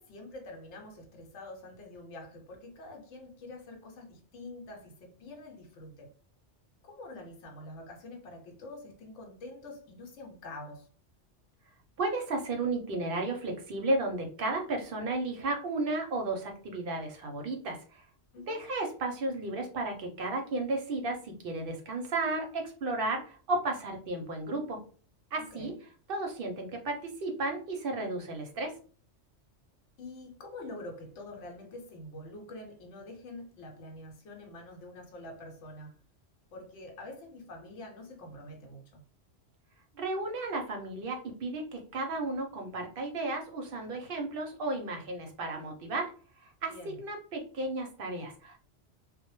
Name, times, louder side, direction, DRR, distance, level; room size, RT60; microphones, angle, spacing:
voice 1, 0.0-6.1 6.8-10.9 18.3-18.7 25.4-25.8 30.0-35.9 36.5-39.0 46.7-47.0, left 2 dB, 80° left, 0.9 m, -46 dB
voice 2, 12.0-18.1 18.5-24.8 25.3-25.7 26.1-28.7 39.9-46.1 46.4-48.6, right 2 dB, 60° right, 0.7 m, -33 dB
2.1 x 2.1 x 2.9 m
omnidirectional pair, 1.2 m